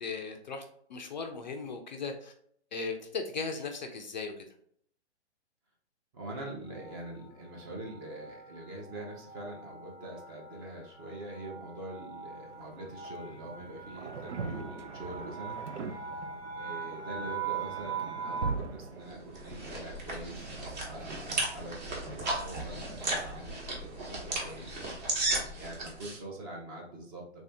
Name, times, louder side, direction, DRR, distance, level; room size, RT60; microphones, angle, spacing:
voice 1, 0.0-0.6 0.9-2.3 2.7-4.5, left 4 dB, 40° left, 5 dB, 0.4 m, -37 dB
voice 2, 6.1-15.6 16.1-16.2 16.6-27.4, right 1 dB, 20° right, -1 dB, 0.6 m, -44 dB
sound 1, 6.7-18.8, right 6 dB, 65° right, 1.2 m, -42 dB
sound 2, 12.5-24.1, right 4 dB, 90° right, 0.6 m, -43 dB
sound 3, 19.1-26.2, right 2 dB, 40° right, 1.1 m, -35 dB
3.5 x 2.6 x 3.4 m, 0.64 s
hypercardioid pair, 140°, 35 cm